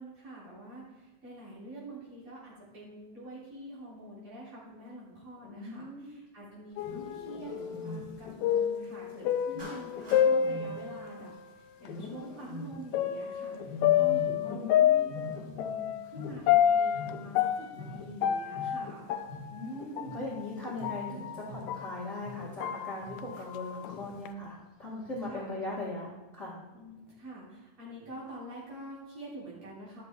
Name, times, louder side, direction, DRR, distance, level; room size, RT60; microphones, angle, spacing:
voice 1, 0.0-11.3 11.8-19.1 20.9-21.3 25.3-25.5 26.7-30.0, right 1 dB, 45° right, -8 dB, 4.5 m, -46 dB
voice 2, 5.4-6.2 14.3-15.1 19.5-26.1 26.3-26.6, left 2 dB, 30° left, -6 dB, 1.9 m, -39 dB
Wild animals, 6.7-8.4 9.5-11.4 11.8-13.0 13.6-14.7 15.0-17.5 17.7-22.6 23.0-23.5 23.9-24.3 25.0-25.5, left 1 dB, 50° left, 1.4 m, -44 dB
sound 1, 6.8-11.4 11.9-12.0 12.9-22.0 22.4-24.3, left 10 dB, 80° left, 1.9 m, -29 dB
Clapping, 9.6-10.3, right 1 dB, 60° right, 4.3 m, -47 dB
11.5 x 7.7 x 3.7 m, 1.1 s
omnidirectional pair, 3.4 m